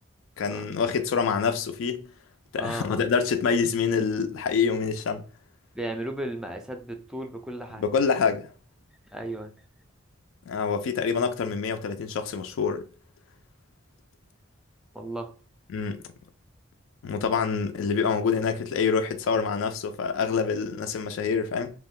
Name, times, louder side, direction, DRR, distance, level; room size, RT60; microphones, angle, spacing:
voice 1, 0.4-2.1 2.5-5.2 7.7-8.5 10.5-12.8 15.7-16.0 17.0-21.7, left 5 dB, 85° left, 0.3 m, -26 dB
voice 2, 2.6-3.1 5.7-7.8 9.1-9.5 14.9-15.3, right 1 dB, 5° right, 0.3 m, -35 dB
2.4 x 2.1 x 3.6 m
head